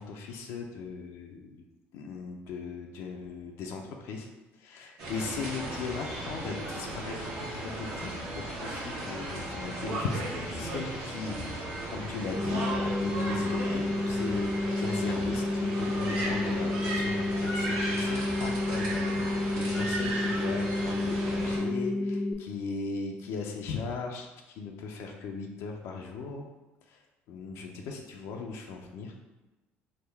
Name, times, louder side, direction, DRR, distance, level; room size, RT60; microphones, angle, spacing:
voice 1, 0.0-1.6 1.9-4.3 4.6-7.3 7.8-26.5 26.9-27.0 27.3-29.1, left 4 dB, 75° left, 1 dB, 0.4 m, -38 dB
sound 1, 5.0-21.6, right 1 dB, 75° right, 1.2 m, -36 dB
sound 2, 12.3-22.3, left 2 dB, 5° left, 0.4 m, -30 dB
3.5 x 2.2 x 3.3 m, 1.1 s
supercardioid pair, 90°, 5 cm